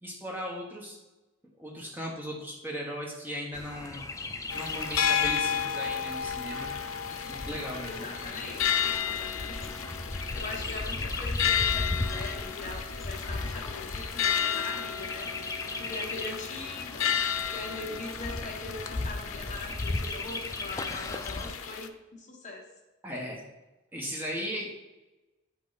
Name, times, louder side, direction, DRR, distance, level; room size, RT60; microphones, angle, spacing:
voice 1, 0.0-1.0 1.6-4.0 4.5-6.7 7.1-8.3 23.0-23.4 23.9-24.7, equal, 10° right, -2 dB, 1.2 m, -37 dB
Chirp tweet, 3.5-21.6, left 2 dB, 15° left, 0.4 m, -37 dB
sound 1, 4.5-21.9, left 8 dB, 90° left, 0.6 m, -32 dB
voice 2, 7.8-9.9 10.3-15.3 15.8-17.1 17.5-22.6, left 3 dB, 35° left, -1 dB, 1.3 m, -41 dB
8.6 x 5.3 x 4.1 m, 1.1 s
head